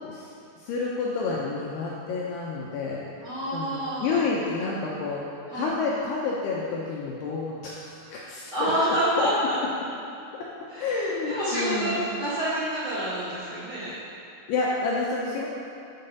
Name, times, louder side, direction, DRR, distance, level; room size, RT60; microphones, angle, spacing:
voice 1, 0.6-3.0 3.5-5.2 5.5-8.7 9.1-9.3 10.8-12.0 14.5-15.5, left 4 dB, 80° left, -5 dB, 2.5 m, -29 dB
voice 2, 3.2-4.2 5.5-5.7 8.5-9.6 10.7-13.9, right 1 dB, 50° right, -14 dB, 2.2 m, -28 dB
6.3 x 5.7 x 6.7 m, 2.6 s
omnidirectional pair, 5.4 m